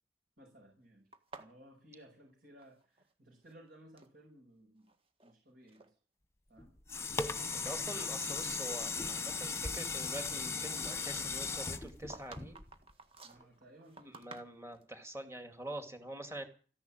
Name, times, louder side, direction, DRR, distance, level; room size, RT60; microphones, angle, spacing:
voice 1, 0.4-1.1 1.4-4.9 5.2-5.9 6.5-6.8 7.2-7.9 13.2-14.3, right 1 dB, 65° right, -2 dB, 6.1 m, -59 dB
sound 1, 1.1-3.1 3.4-4.2 4.8-5.3 5.7-5.9 6.6-6.7 7.2-8.7 9.0-9.2 11.5-14.9, right 3 dB, 35° right, 1.7 m, -54 dB
sound 2, 6.6-12.9 13.4-13.5, left 4 dB, 15° left, 1.2 m, -37 dB
voice 2, 7.5-12.6 14.1-16.4, right 1 dB, 15° right, 6 dB, 2.7 m, -45 dB
15.0 x 11.0 x 9.0 m, 0.40 s
head